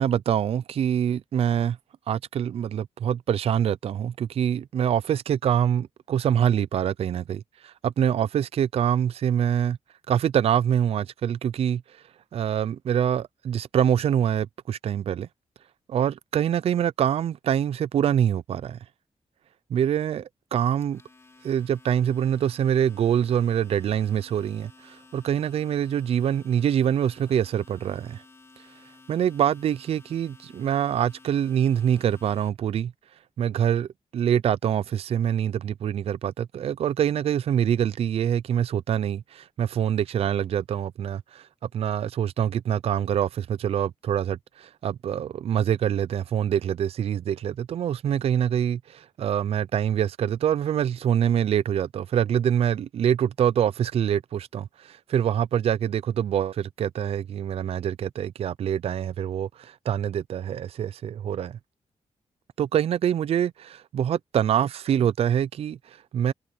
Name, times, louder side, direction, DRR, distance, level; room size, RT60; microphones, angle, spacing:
voice 1, 0.0-1.8 2.1-9.8 10.1-11.8 12.3-15.3 15.9-18.8 19.7-21.0 21.4-28.2 29.1-32.9 33.4-41.5 41.7-61.6 62.6-66.3, right 9 dB, 60° right, 0.4 m, -25 dB
Domestic sounds home sounds, 20.6-32.5, left 3 dB, 25° left, 2.8 m, -54 dB
wide cardioid pair, 175°, 11 cm